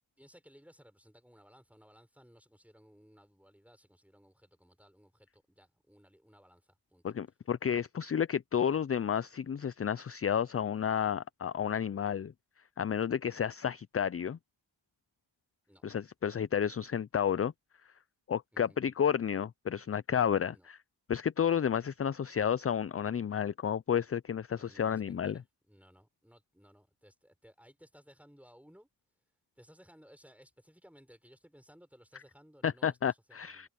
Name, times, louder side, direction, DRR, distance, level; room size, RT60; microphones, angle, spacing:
voice 1, 0.2-7.0 15.7-15.8 18.5-18.8 20.5-20.7 21.5-21.6 24.5-28.9 29.6-33.7, equal, 5° right, 4.5 m, -60 dB
voice 2, 7.0-12.3 12.8-14.4 15.8-17.5 18.3-20.8 21.1-25.4 32.6-33.7, left 8 dB, 35° left, 0.4 m, -31 dB
cardioid pair, 45°, 46 cm